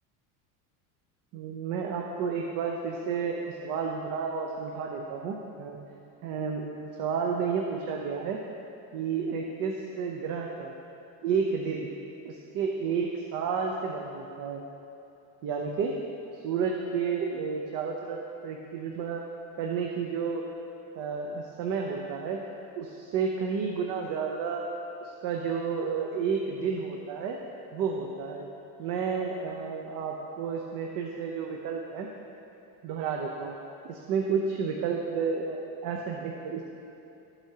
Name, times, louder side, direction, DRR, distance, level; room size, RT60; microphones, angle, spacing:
voice 1, 1.3-5.8 6.2-6.7 7.0-8.4 8.9-10.7 11.2-11.9 12.2-14.6 15.4-16.0 16.3-19.2 19.6-20.4 20.9-22.4 22.8-24.7 25.0-27.4 27.7-28.4 28.8-32.1 32.8-33.6 33.8-36.7, right 5 dB, 50° right, 1 dB, 0.8 m, -31 dB
12.5 x 8.1 x 2.8 m, 2.9 s
cardioid pair, 155°, 41 cm